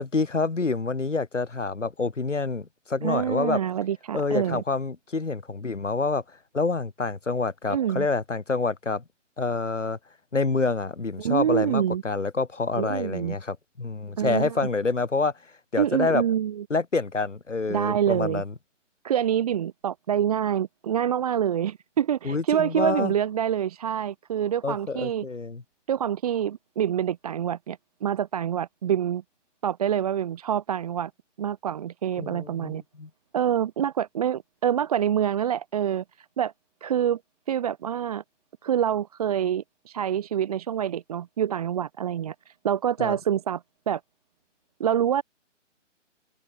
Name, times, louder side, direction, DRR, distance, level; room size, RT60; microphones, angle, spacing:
voice 1, 0.0-3.6 4.1-6.2 6.5-9.0 9.4-10.0 10.3-15.3 15.7-16.2 16.7-18.5 22.2-23.1 24.6-25.6 32.2-33.1 43.0-43.2, left 4 dB, 75° left, 3.5 m, -27 dB
voice 2, 3.0-4.6 7.7-8.1 11.2-12.0 12.8-13.4 14.2-14.6 15.8-16.6 17.7-18.4 19.0-25.3 25.9-29.2 29.6-31.1 31.4-32.8 33.3-36.5 36.8-37.2 37.5-38.2 38.6-44.0 44.8-45.2, right 9 dB, 30° right, 1.0 m, -26 dB
open air
figure-of-eight pair, 140°, 37 cm